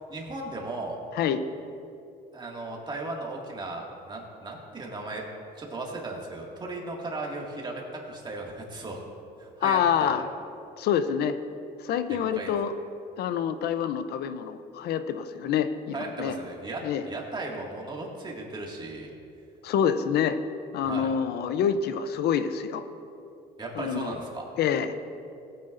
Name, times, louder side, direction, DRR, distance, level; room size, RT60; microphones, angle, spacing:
voice 1, 0.1-1.0 2.3-5.2 5.6-9.0 9.4-10.1 12.3-12.5 15.9-19.1 20.9-21.1 23.6-24.4, right 2 dB, 25° right, -1 dB, 2.0 m, -36 dB
voice 2, 9.6-10.3 10.8-11.3 11.8-12.7 13.2-16.3 16.8-17.0 19.6-20.4 20.7-22.8 23.8-24.1 24.6-24.9, left 8 dB, 70° left, 10 dB, 0.6 m, -26 dB
17.5 x 9.6 x 2.6 m, 2.7 s
cardioid pair, 110°, 17 cm